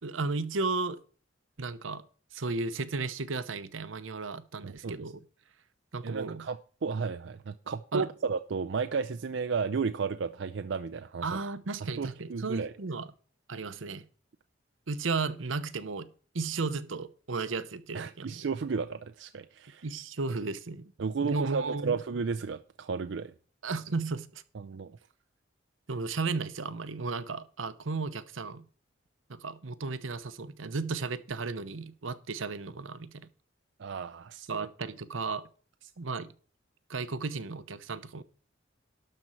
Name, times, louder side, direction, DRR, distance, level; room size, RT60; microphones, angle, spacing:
voice 1, 0.0-1.0 1.6-2.1 2.3-5.2 5.9-6.5 7.9-8.1 11.2-13.1 13.5-14.1 14.9-16.1 16.3-18.4 19.8-20.9 21.2-21.9 23.6-24.4 25.9-28.6 29.3-33.3 34.5-35.5 36.0-36.3 36.9-38.2, right 4 dB, 85° right, 0.9 m, -34 dB
voice 2, 4.6-5.0 6.0-11.4 11.8-12.7 17.9-19.9 21.0-23.3 24.5-24.9 33.8-34.7, right 5 dB, 65° right, 0.4 m, -33 dB
12.0 x 4.3 x 7.5 m
head